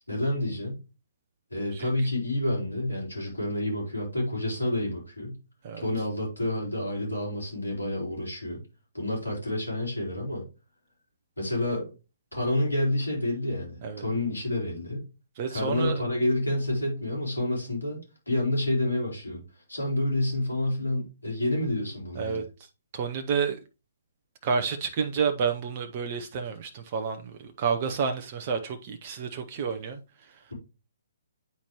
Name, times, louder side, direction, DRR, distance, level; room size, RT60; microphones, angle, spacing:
voice 1, 0.1-0.8 1.5-5.4 5.8-8.6 8.9-10.5 11.4-11.9 12.3-15.0 15.5-18.0 18.3-19.4 19.7-22.4, left 1 dB, 85° left, 3.9 m, -29 dB
voice 2, 15.4-16.0 22.1-22.7 22.9-23.6 24.4-30.4, right 6 dB, 35° right, 0.7 m, -30 dB
9.5 x 4.3 x 3.0 m
figure-of-eight pair, 130°, 0 cm